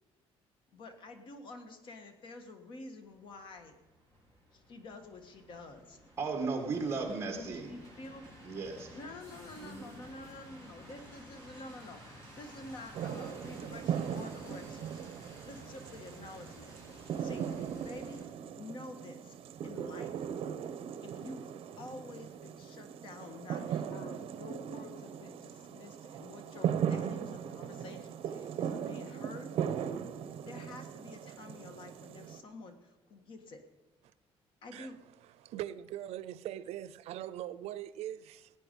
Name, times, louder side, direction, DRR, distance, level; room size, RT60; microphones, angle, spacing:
voice 1, 0.7-3.8 4.5-6.0 7.3-8.2 8.9-14.9 15.4-16.7 17.2-18.2 18.6-19.4 19.6-20.2 21.0-21.5 21.8-29.5 30.4-33.6 34.6-35.0, left 2 dB, 50° left, 1.6 m, -49 dB
sound 1, 3.1-18.3, equal, 25° left, 5.1 m, -54 dB
voice 2, 6.2-7.7 8.4-9.0 9.6-9.9, right 4 dB, 25° right, 1.9 m, -35 dB
sound 2, 12.9-32.4, right 8 dB, 60° right, 0.9 m, -38 dB
voice 3, 35.4-38.5, right 12 dB, 85° right, 0.5 m, -41 dB
18.0 x 9.1 x 5.3 m
cardioid pair, 175°, 11 cm